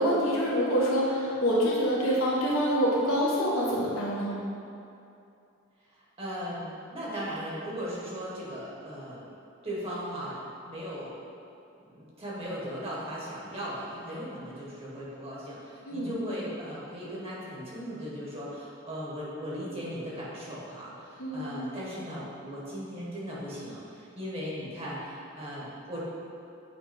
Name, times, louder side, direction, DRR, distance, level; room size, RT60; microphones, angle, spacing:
voice 1, 0.0-4.4 15.8-16.1 21.2-21.5, equal, 85° left, -6 dB, 1.6 m, -26 dB
voice 2, 5.9-9.2 9.6-11.1 11.8-26.0, equal, 30° right, -7 dB, 1.7 m, -38 dB
8.6 x 3.4 x 5.4 m, 2.6 s
head